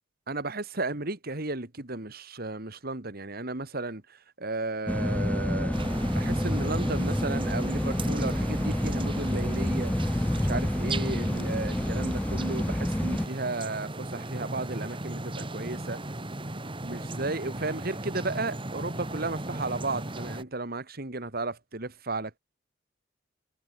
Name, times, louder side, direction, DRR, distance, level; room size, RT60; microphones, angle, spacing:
voice 1, 0.3-4.0 4.4-9.9 10.4-16.0 16.8-22.3, right 2 dB, 50° right, 2.2 m, -34 dB
sound 1, 4.9-13.3, left 1 dB, 5° left, 0.4 m, -28 dB
sound 2, 5.7-20.4, right 2 dB, 25° right, 2.4 m, -37 dB
head